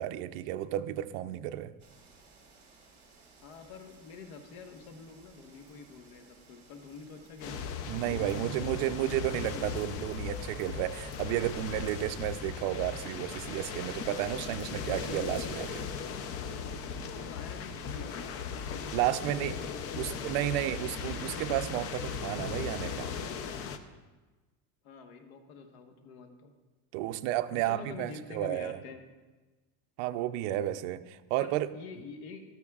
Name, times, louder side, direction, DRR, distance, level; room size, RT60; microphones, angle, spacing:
voice 1, 0.0-1.7 7.9-15.9 18.9-19.5 20.0-23.1 26.9-28.8 30.0-31.7, right 13 dB, 60° right, 0.6 m, -32 dB
sound 1, 1.8-15.9, right 4 dB, 15° right, 2.9 m, -56 dB
voice 2, 3.4-7.7 8.0-9.0 9.4-9.9 16.9-20.4 24.8-26.5 27.5-29.0 31.4-32.4, left 5 dB, 80° left, 1.4 m, -47 dB
sound 2, 7.4-23.8, left 6 dB, 35° left, 0.6 m, -38 dB
13.5 x 13.0 x 2.4 m
supercardioid pair, 145°, 41 cm